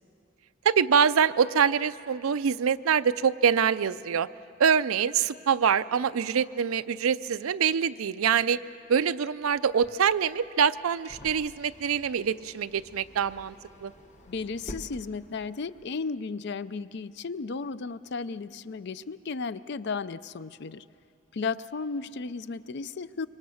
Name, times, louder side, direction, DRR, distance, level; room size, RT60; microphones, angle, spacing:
voice 1, 0.6-4.3 4.6-8.6 8.9-13.5 13.8-13.9, right 7 dB, 80° right, 13 dB, 0.5 m, -25 dB
sound 1, 9.6-15.8, equal, 35° left, 1.2 m, -49 dB
voice 2, 14.3-20.8 21.3-23.3, left 4 dB, 55° left, 16 dB, 0.5 m, -34 dB
26.0 x 23.5 x 6.4 m, 2.6 s
head